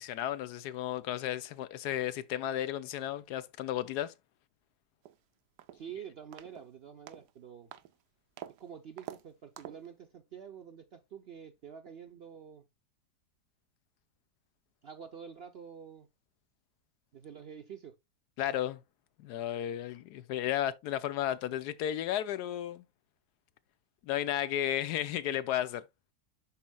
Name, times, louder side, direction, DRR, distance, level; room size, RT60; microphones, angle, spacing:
voice 1, 0.0-4.1 18.4-18.8 19.2-22.8 24.0-25.8, left 11 dB, 80° left, 1.2 m, -33 dB
sound 1, 5.0-5.2 5.6-5.9 6.3-6.7 7.1-7.3 7.7-7.9 8.4-8.6 9.0-9.2 9.6-9.9, right 12 dB, 85° right, 1.2 m, -47 dB
voice 2, 5.8-7.7 8.6-12.7 14.8-16.1 17.1-17.9, right 7 dB, 60° right, 0.6 m, -47 dB
11.5 x 4.3 x 2.2 m
omnidirectional pair, 1.7 m